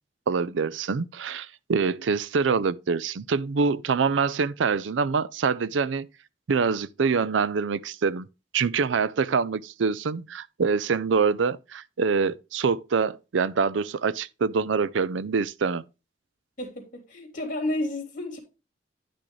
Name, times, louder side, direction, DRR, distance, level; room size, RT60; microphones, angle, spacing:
voice 1, 0.3-6.1 6.5-8.3 8.5-15.8, right 5 dB, 90° right, 0.5 m, -25 dB
voice 2, 16.6-18.4, left 1 dB, 45° left, 3.1 m, -31 dB
10.0 x 6.1 x 3.1 m
head